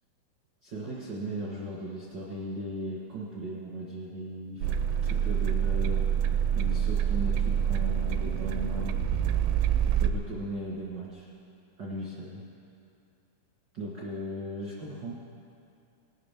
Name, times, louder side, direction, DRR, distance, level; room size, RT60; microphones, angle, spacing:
voice 1, 0.6-4.7 5.0-6.1 6.5-9.0 9.8-11.3 11.8-12.4 13.7-15.1, right 1 dB, 70° right, -6 dB, 1.0 m, -37 dB
sound 1, 4.6-10.1, right 9 dB, 90° right, 2.7 m, -26 dB
18.5 x 12.5 x 3.6 m, 2.5 s
omnidirectional pair, 4.7 m